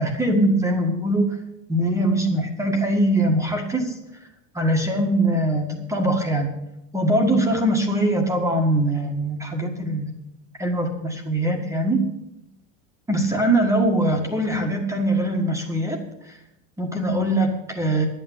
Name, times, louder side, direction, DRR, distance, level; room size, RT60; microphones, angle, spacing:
voice 1, 0.0-1.4 1.7-4.0 4.5-6.5 6.9-10.1 10.6-12.0 13.1-16.0 16.3-16.4 16.8-18.0, right 1 dB, 10° right, 2 dB, 1.8 m, -22 dB
11.5 x 9.0 x 9.5 m, 0.87 s
supercardioid pair, 150°, 38 cm